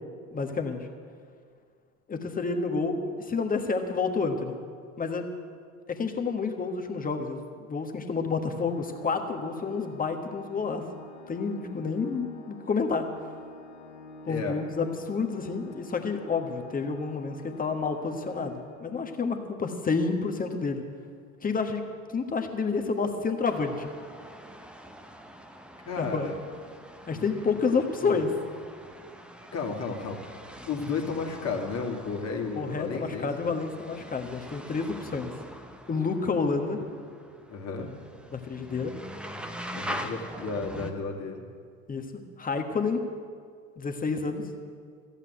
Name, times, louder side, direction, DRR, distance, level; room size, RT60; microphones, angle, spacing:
voice 1, 0.3-0.9 2.1-4.6 5.0-5.3 5.9-10.8 11.3-13.0 14.3-20.8 21.4-21.8 22.1-23.9 26.0-26.3 27.1-28.3 32.6-35.3 35.9-36.8 38.3-38.9 41.9-42.1 42.4-43.0 43.8-44.4, left 4 dB, 20° left, 5 dB, 1.4 m, -29 dB
Organ, 8.5-19.3, left 2 dB, 60° left, 1.4 m, -49 dB
voice 2, 14.3-14.6 25.9-26.4 27.1-27.3 28.0-28.3 29.5-30.2 30.6-33.6 37.5-38.0 39.7-41.5, left 4 dB, 40° left, 1 dB, 2.2 m, -33 dB
sound 1, 23.4-40.9, equal, ahead, 0.8 m, -43 dB
14.0 x 8.4 x 9.3 m, 2.1 s
figure-of-eight pair, 70°, 42 cm